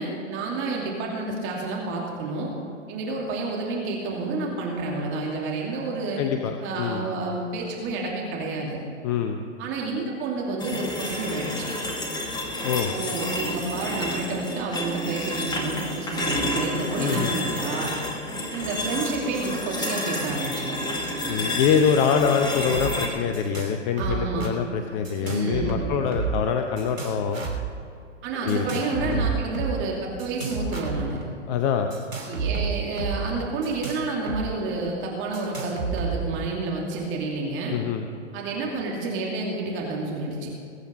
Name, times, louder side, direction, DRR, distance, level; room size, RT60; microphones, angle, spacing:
voice 1, 0.0-2.5 2.9-6.2 6.6-8.8 9.6-11.7 12.9-17.9 18.5-20.8 24.0-24.5 25.2-25.9 28.2-31.2 32.2-37.7 38.3-40.5, right 3 dB, 30° right, -2 dB, 2.7 m, -30 dB
voice 2, 6.2-7.0 9.0-9.4 12.6-12.9 17.0-17.3 21.3-27.5 28.4-28.7 29.0-29.3 31.5-31.9 37.7-38.1, left 7 dB, 30° left, 5 dB, 0.8 m, -24 dB
sound 1, 10.6-23.1, left 1 dB, 10° left, 2.0 m, -30 dB
sound 2, 22.7-22.9 23.1-23.7 24.0-24.5 25.0-26.4 26.8-27.7 28.5-29.7 30.2-31.3 31.9-34.4 34.7-34.8 35.3-36.4, right 5 dB, 85° right, 3.3 m, -30 dB
21.0 x 9.2 x 5.2 m, 2.7 s
figure-of-eight pair, 115°, 38 cm